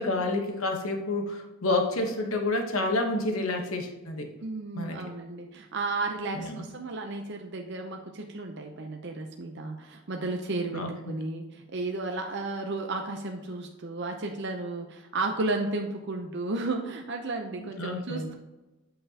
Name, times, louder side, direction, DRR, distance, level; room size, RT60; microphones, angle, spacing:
voice 1, 0.0-4.3 4.7-5.0 6.3-6.6 10.7-11.2 17.6-18.3, left 2 dB, 70° left, 4 dB, 1.1 m, -29 dB
voice 2, 4.4-18.3, right 3 dB, 50° right, 2 dB, 0.7 m, -33 dB
8.8 x 5.6 x 2.9 m, 1.1 s
head